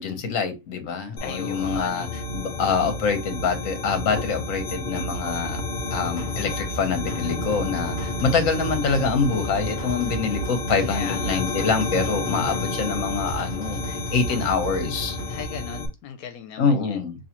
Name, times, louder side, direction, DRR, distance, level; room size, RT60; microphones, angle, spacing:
voice 1, 0.0-2.1 2.3-5.6 5.9-15.2 16.6-17.2, left 5 dB, 70° left, 1.3 m, -25 dB
voice 2, 1.2-2.1 10.8-11.4 15.3-17.0, left 8 dB, 85° left, 1.0 m, -37 dB
sound 1, 1.2-15.9, left 2 dB, 40° left, 0.8 m, -30 dB
sound 2, 6.0-15.4, equal, 20° left, 0.4 m, -39 dB
5.5 x 2.6 x 2.9 m
omnidirectional pair, 1.5 m